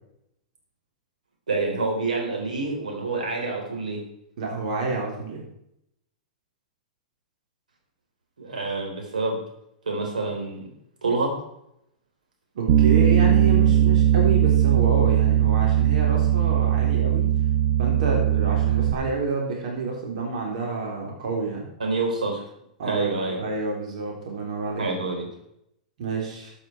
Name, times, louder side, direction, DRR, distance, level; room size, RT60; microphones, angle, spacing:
voice 1, 1.5-4.0 8.4-9.4 9.8-10.6 11.0-11.3 21.8-22.4 22.8-23.4 24.8-25.3, right 3 dB, 85° right, 1 dB, 3.8 m, -27 dB
voice 2, 4.4-5.4 12.6-17.3 17.8-21.7 22.8-24.8 26.0-26.5, right 3 dB, 65° right, -1 dB, 3.5 m, -29 dB
Bass guitar, 12.7-18.9, right 11 dB, 50° right, 1.5 m, -19 dB
13.5 x 8.8 x 4.5 m, 0.77 s
hypercardioid pair, 105°, 4 cm